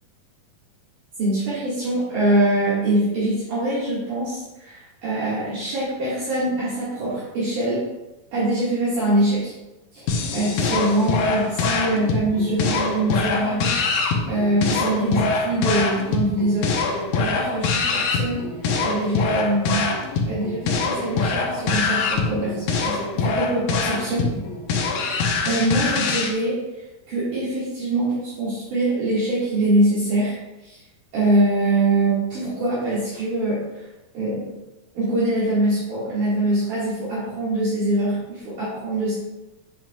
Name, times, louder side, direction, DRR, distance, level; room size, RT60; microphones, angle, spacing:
voice 1, 1.2-7.8 8.3-9.5 9.9-10.0 10.3-16.7 17.2-18.4 18.8-19.9 20.3-24.4 24.9-26.6 27.1-30.4 30.6-30.8 31.1-33.8 34.1-34.6 35.0-39.1, right 1 dB, 60° right, -11 dB, 3.6 m, -23 dB
sound 1, 10.1-26.3, left 4 dB, 75° left, 2.7 m, -24 dB
8.7 x 7.4 x 2.5 m, 1.0 s
omnidirectional pair, 4.3 m